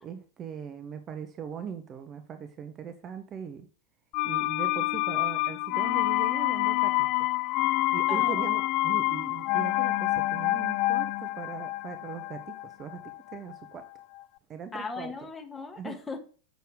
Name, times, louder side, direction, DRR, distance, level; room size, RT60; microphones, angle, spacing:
voice 1, 0.0-3.6 4.2-7.1 7.9-13.0 13.3-13.8 14.5-15.1 15.8-16.0, right 7 dB, 25° right, 9 dB, 1.0 m, -40 dB
sound 1, 4.1-13.9 14.2-14.3, left 19 dB, 40° left, 0.3 m, -27 dB
voice 2, 8.1-8.5 14.7-16.2, left 4 dB, 15° left, 3 dB, 1.9 m, -37 dB
7.8 x 6.9 x 5.1 m, 0.38 s
figure-of-eight pair, 90°, 0 cm